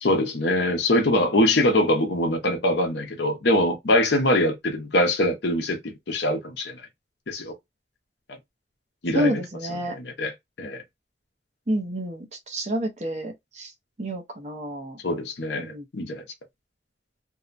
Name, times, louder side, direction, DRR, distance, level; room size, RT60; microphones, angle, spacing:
voice 1, 0.0-6.9 7.3-7.5 9.0-9.4 10.0-10.8 15.0-16.2, left 1 dB, 80° left, 0.8 m, -23 dB
voice 2, 9.1-10.0 11.7-13.7 14.0-15.0 15.6-15.8, equal, 40° right, 0.7 m, -29 dB
2.7 x 2.2 x 2.5 m
head